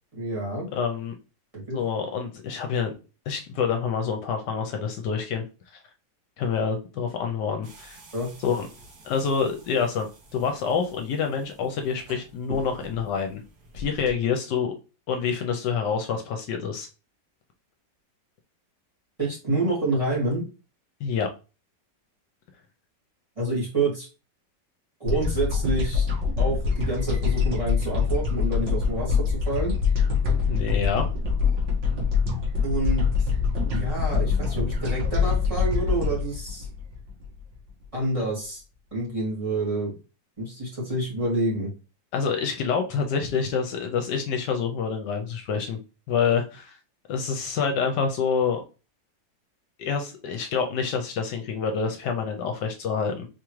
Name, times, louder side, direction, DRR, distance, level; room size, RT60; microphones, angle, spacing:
voice 1, 0.2-0.7 1.5-1.8 8.1-8.3 19.2-20.5 23.4-24.1 25.0-26.1 26.4-29.7 32.6-33.1 33.7-36.7 37.9-38.6 38.9-40.0 40.4-41.7, right 2 dB, 20° right, -4 dB, 2.1 m, -28 dB
voice 2, 0.7-1.1 1.7-2.9 3.3-5.4 6.4-8.0 8.4-8.7 9.0-13.4 13.7-14.7 15.1-16.9 21.0-21.3 30.5-31.1 42.1-45.8 46.1-46.8 47.1-48.6 49.8-53.3, left 6 dB, 75° left, 5 dB, 1.2 m, -27 dB
sound 1, 7.6-14.1, equal, 60° right, 1.8 m, -46 dB
sound 2, 25.1-37.5, left 5 dB, 80° right, 2.2 m, -24 dB
4.7 x 3.6 x 3.1 m, 0.32 s
omnidirectional pair, 2.0 m